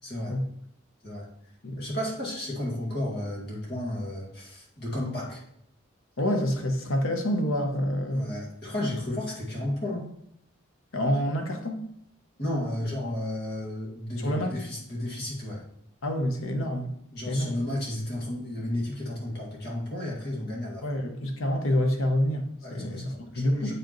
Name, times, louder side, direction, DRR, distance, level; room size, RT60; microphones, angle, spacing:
voice 1, 0.0-0.4 1.0-1.3 1.7-5.4 8.1-10.1 12.4-15.6 17.1-21.0 22.6-23.7, left 1 dB, 50° left, 2.0 m, -33 dB
voice 2, 6.2-8.3 10.9-11.8 14.2-14.6 16.0-16.9 17.3-17.6 20.8-23.7, equal, 75° left, 0.9 m, -27 dB
7.9 x 5.0 x 3.0 m
head